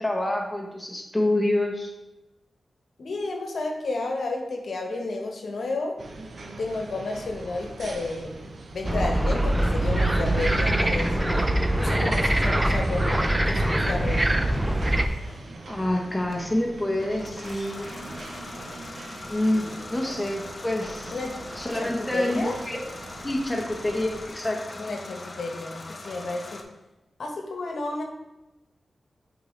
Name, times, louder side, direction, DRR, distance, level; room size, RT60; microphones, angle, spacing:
voice 1, 0.0-1.9 15.7-18.0 19.3-21.1 21.6-22.8 23.2-24.8, left 1 dB, 10° left, 0 dB, 0.9 m, -27 dB
voice 2, 3.0-5.9 6.6-8.4 8.7-11.4 11.8-14.3 21.1-21.3 21.7-22.6 24.8-26.6 27.2-28.0, left 2 dB, 75° left, 2 dB, 1.0 m, -31 dB
sound 1, 6.0-24.3, right 2 dB, 65° right, 0.6 m, -42 dB
sound 2, 8.8-15.1, right 1 dB, 15° right, 0.4 m, -23 dB
sound 3, 13.5-26.6, left 2 dB, 35° left, 0.7 m, -42 dB
8.3 x 3.8 x 3.2 m, 0.99 s
wide cardioid pair, 105°, 0 cm